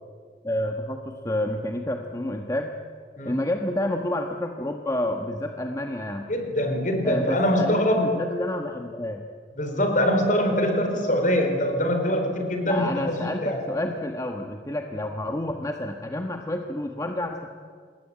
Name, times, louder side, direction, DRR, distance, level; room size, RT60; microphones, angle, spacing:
voice 1, 0.4-2.8 3.2-6.3 7.0-9.3 12.6-17.5, left 1 dB, 20° left, 3 dB, 1.3 m, -29 dB
voice 2, 6.3-8.2 9.6-13.6, equal, 45° left, 5 dB, 4.5 m, -23 dB
27.0 x 20.5 x 8.8 m, 2.1 s
head